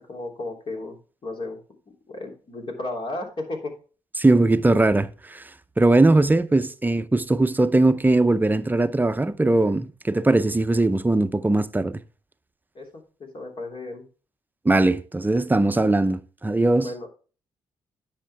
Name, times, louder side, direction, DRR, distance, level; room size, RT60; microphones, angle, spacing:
voice 1, 0.1-1.0 1.2-1.6 2.1-3.7 12.7-14.0 16.8-17.1, left 2 dB, 50° left, 3.2 m, -34 dB
voice 2, 4.2-5.4 5.8-12.0 14.6-16.9, right 2 dB, 15° right, 0.7 m, -20 dB
10.0 x 6.7 x 3.5 m
supercardioid pair, 65°, 11 cm